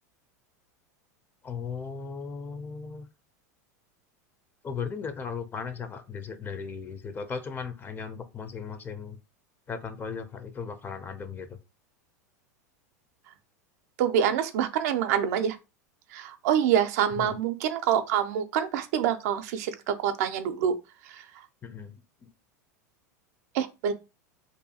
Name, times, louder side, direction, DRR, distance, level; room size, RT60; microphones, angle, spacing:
voice 1, 1.4-3.1 4.6-9.2 9.7-11.6 17.1-17.4 21.6-22.3, left 5 dB, 20° left, 0.5 m, -37 dB
voice 2, 14.0-15.6 16.1-20.7 21.1-21.2 23.5-23.9, right 9 dB, 70° right, 0.4 m, -26 dB
2.5 x 2.3 x 2.7 m
hypercardioid pair, 110°, 9 cm